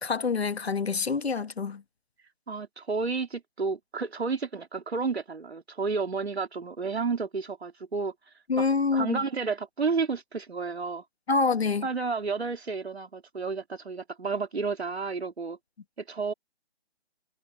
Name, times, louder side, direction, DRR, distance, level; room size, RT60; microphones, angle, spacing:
voice 1, 0.0-1.8 8.5-9.2 11.3-11.9, left 4 dB, 70° left, 1.7 m, -26 dB
voice 2, 2.5-8.1 8.6-8.7 8.9-11.0 11.8-15.6 16.1-16.3, right 4 dB, 70° right, 3.9 m, -31 dB
hypercardioid pair, 175°, 33 cm